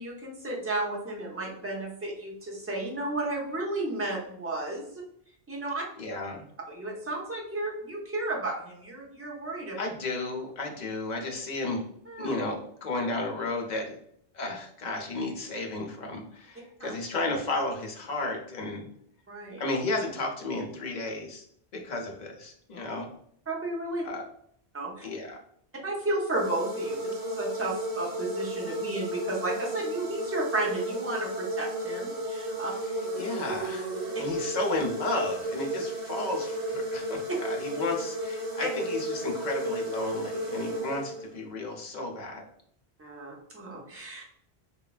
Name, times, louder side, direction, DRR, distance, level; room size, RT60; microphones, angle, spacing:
voice 1, 0.0-4.9 5.5-5.8 6.7-9.8 12.1-12.3 16.8-16.9 19.3-19.6 23.5-24.1 24.7-25.0 25.8-32.7 38.6-38.7 43.0-44.2, right 2 dB, 20° right, -2 dB, 0.4 m, -33 dB
voice 2, 6.0-6.5 9.8-11.8 12.2-14.0 14.3-18.9 19.6-21.4 21.7-23.1 24.0-24.2 25.0-25.4 33.2-42.4, left 2 dB, 55° left, 2 dB, 0.6 m, -33 dB
sound 1, 26.3-41.5, right 1 dB, 45° right, 0.7 m, -33 dB
3.1 x 2.2 x 2.3 m, 0.67 s
omnidirectional pair, 1.1 m